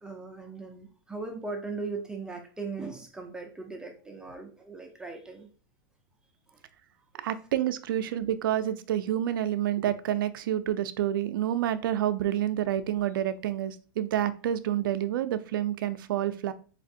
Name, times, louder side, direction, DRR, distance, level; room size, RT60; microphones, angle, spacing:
voice 1, 0.0-5.5 6.5-6.6, right 3 dB, 5° right, 2 dB, 0.4 m, -39 dB
voice 2, 7.2-16.5, right 11 dB, 75° right, 11 dB, 0.4 m, -28 dB
4.3 x 2.4 x 2.6 m, 0.38 s
supercardioid pair, 145°, 11 cm